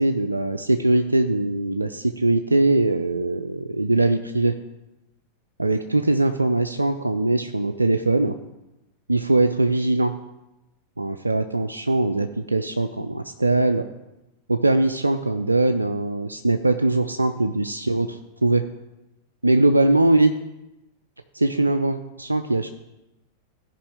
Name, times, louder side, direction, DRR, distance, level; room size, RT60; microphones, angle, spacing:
voice 1, 0.0-4.5 5.6-8.3 9.1-10.1 11.0-13.8 14.5-18.6 19.4-20.3 21.3-22.7, right 2 dB, 80° right, 8 dB, 0.4 m, -21 dB
15.5 x 5.4 x 3.4 m, 0.96 s
figure-of-eight pair, 90°, 0 cm